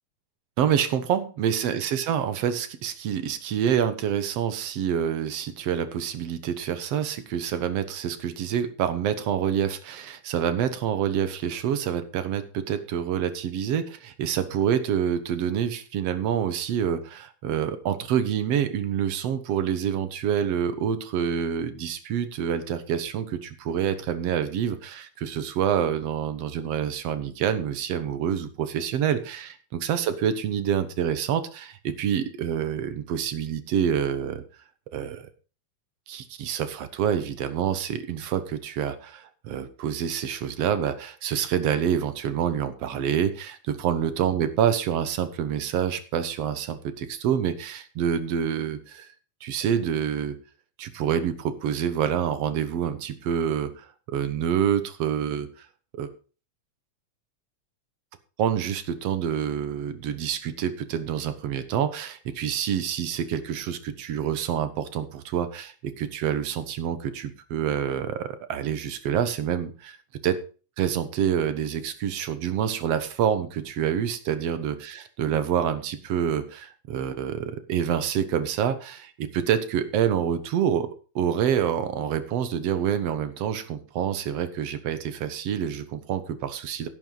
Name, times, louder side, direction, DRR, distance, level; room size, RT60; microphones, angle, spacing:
voice 1, 0.6-34.4 34.9-35.3 36.1-49.1 49.4-50.4 50.8-55.7 56.0-56.1 58.4-70.0 70.2-70.4 70.8-80.9 81.2-86.9, right 9 dB, 60° right, 11 dB, 1.9 m, -27 dB
12.5 x 11.0 x 3.9 m, 0.35 s
omnidirectional pair, 3.9 m